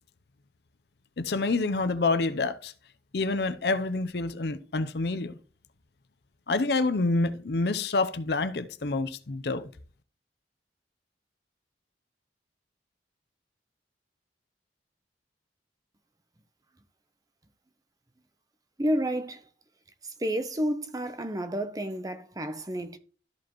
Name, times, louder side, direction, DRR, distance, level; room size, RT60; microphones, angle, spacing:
voice 1, 1.2-2.7 3.1-5.4 6.5-9.7, left 3 dB, 65° left, 0.6 m, -27 dB
voice 2, 18.8-19.4 20.0-23.0, equal, 20° right, 0.7 m, -30 dB
13.0 x 4.9 x 3.0 m
head